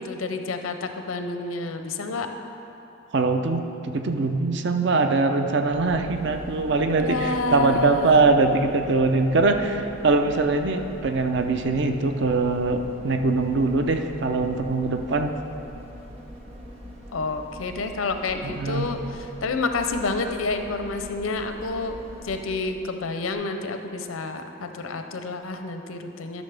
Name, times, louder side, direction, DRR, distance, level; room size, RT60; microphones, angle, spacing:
voice 1, 0.0-2.3 7.0-8.2 17.1-19.0 19.4-22.0 22.2-26.4, left 3 dB, 90° left, 7 dB, 0.6 m, -29 dB
voice 2, 3.1-15.3 18.4-18.9, right 3 dB, 60° right, 6 dB, 0.5 m, -22 dB
sound 1, 5.6-22.9 23.3-23.4, equal, 30° right, 0.9 m, -42 dB
12.0 x 6.3 x 3.4 m, 3.0 s
head